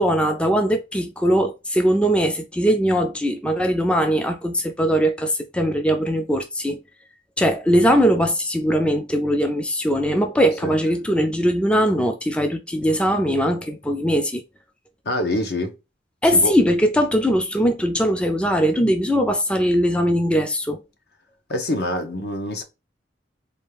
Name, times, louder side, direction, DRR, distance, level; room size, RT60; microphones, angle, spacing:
voice 1, 0.0-6.8 7.4-14.4 16.2-20.8, equal, 5° left, 0.4 m, -20 dB
voice 2, 15.0-15.7 16.3-16.6 21.5-22.6, left 1 dB, 60° left, 0.9 m, -25 dB
4.1 x 2.4 x 3.2 m
head